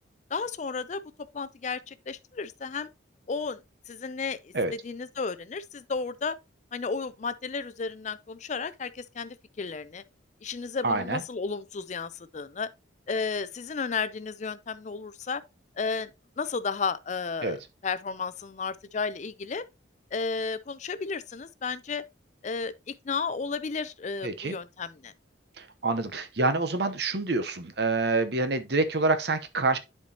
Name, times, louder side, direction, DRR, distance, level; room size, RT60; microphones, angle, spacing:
voice 1, 0.3-1.0 1.3-2.9 3.3-3.6 3.9-6.4 6.7-10.0 10.4-12.7 13.1-15.4 15.8-16.1 16.4-17.6 17.8-19.6 20.1-22.0 22.4-25.1, left 4 dB, 40° left, 0.4 m, -33 dB
voice 2, 10.8-11.2 17.4-17.6 24.2-24.5 25.6-29.8, right 3 dB, 55° right, 0.9 m, -27 dB
10.5 x 4.5 x 2.8 m
head